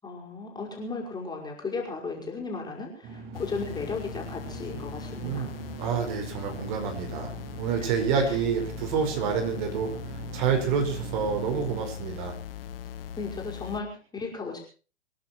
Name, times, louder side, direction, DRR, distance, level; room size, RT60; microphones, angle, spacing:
voice 1, 0.0-5.5 6.4-6.6 7.8-7.9 8.2-8.4 13.2-14.6, left 4 dB, 10° left, -1 dB, 5.4 m, -35 dB
sound 1, 3.0-11.8, right 6 dB, 25° right, 2.2 m, -41 dB
sound 2, 3.3-13.8, left 10 dB, 50° left, 1.7 m, -40 dB
voice 2, 5.8-7.3 7.6-9.9 10.3-12.3, right 6 dB, 40° right, 5 dB, 5.4 m, -28 dB
26.0 x 11.0 x 4.5 m, 0.37 s
figure-of-eight pair, 115°, 35 cm